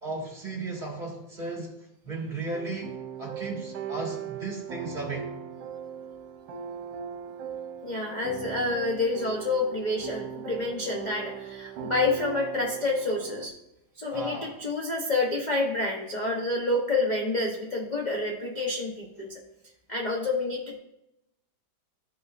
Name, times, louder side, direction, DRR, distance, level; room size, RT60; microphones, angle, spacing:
voice 1, 0.0-1.7 2.0-5.3 14.1-14.5, right 2 dB, 25° right, -1 dB, 1.6 m, -35 dB
sound 1, 2.5-13.5, right 8 dB, 75° right, 1.4 m, -38 dB
voice 2, 7.8-13.5 14.0-19.4 19.9-20.8, left 2 dB, 35° left, -2 dB, 0.7 m, -28 dB
13.5 x 5.6 x 2.5 m, 0.85 s
omnidirectional pair, 2.1 m